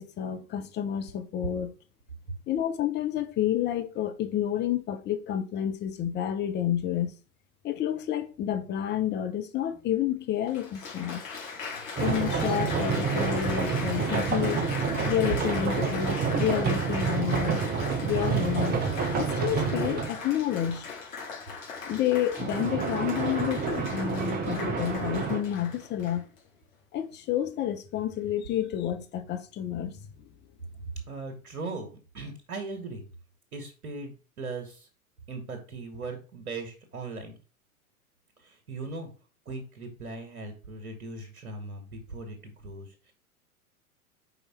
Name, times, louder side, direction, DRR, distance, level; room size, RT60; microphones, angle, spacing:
voice 1, 0.0-1.7 2.5-7.1 7.6-11.2 12.0-14.6 15.0-17.6 18.0-18.7 19.2-20.9 21.8-26.2 26.9-30.0, left 11 dB, 25° left, 0.9 m, -29 dB
Applause, 9.7-9.8 10.5-26.4 27.1-27.5, left 5 dB, 65° left, 2.6 m, -39 dB
sound 1, 12.0-20.2 22.4-25.4, right 5 dB, 20° right, 0.9 m, -28 dB
voice 2, 31.1-33.1 33.5-34.9 35.3-37.4 38.4-39.1 39.5-43.1, right 3 dB, 70° right, 1.8 m, -39 dB
5.2 x 4.6 x 4.3 m
figure-of-eight pair, 95°, 45 cm